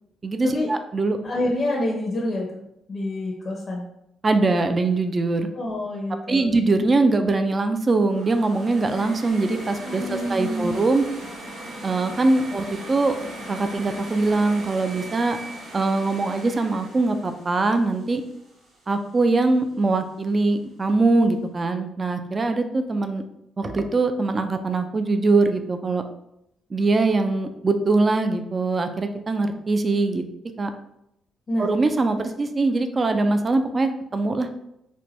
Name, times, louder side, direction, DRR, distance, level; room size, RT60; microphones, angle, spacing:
voice 1, 0.2-1.2 4.2-5.5 6.3-11.0 11.8-13.1 13.5-15.4 15.7-18.2 18.9-23.2 23.6-26.0 26.7-30.2 30.6-30.7 31.6-34.5, right 3 dB, 30° right, 7 dB, 0.4 m, -22 dB
voice 2, 1.2-2.6 2.9-3.8 5.5-6.6 9.8-10.8 31.5-31.7, left 1 dB, 40° left, -2 dB, 0.7 m, -27 dB
sound 1, 8.1-19.1, right 1 dB, 85° right, 1.5 m, -39 dB
4.2 x 2.2 x 3.0 m, 0.80 s
cardioid pair, 90°, 0 cm